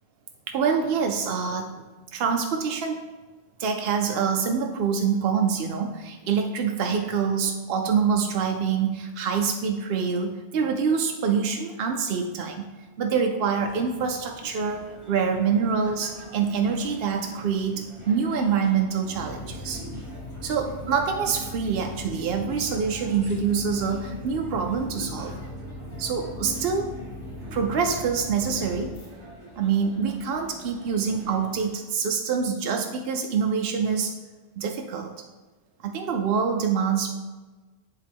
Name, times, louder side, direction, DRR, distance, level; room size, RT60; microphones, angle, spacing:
voice 1, 0.5-3.1 3.6-12.6 13.0-19.8 20.4-25.3 26.0-27.0 27.5-28.9 29.6-34.1 34.6-35.1 35.8-37.1, right 6 dB, 60° right, 3 dB, 0.7 m, -26 dB
sound 1, 13.6-31.8, right 1 dB, 25° right, 1.1 m, -45 dB
sound 2, 19.1-29.1, left 1 dB, 65° left, 2.0 m, -39 dB
10.0 x 3.7 x 3.5 m, 1.3 s
omnidirectional pair, 1.3 m